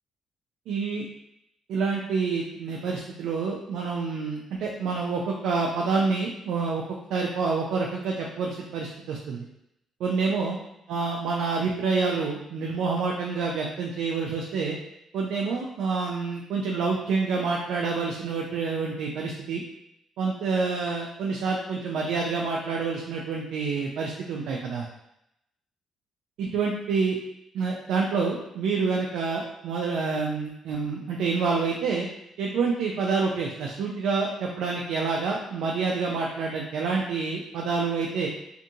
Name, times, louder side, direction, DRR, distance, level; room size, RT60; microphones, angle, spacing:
voice 1, 0.7-1.0 1.7-6.8 7.1-9.5 10.0-10.6 10.9-14.8 15.1-19.6 20.2-24.9 26.4-27.2 27.5-32.1 32.4-38.3, right 4 dB, 85° right, -1 dB, 0.3 m, -27 dB
2.6 x 2.5 x 2.6 m, 0.81 s
cardioid pair, 90°, 0 cm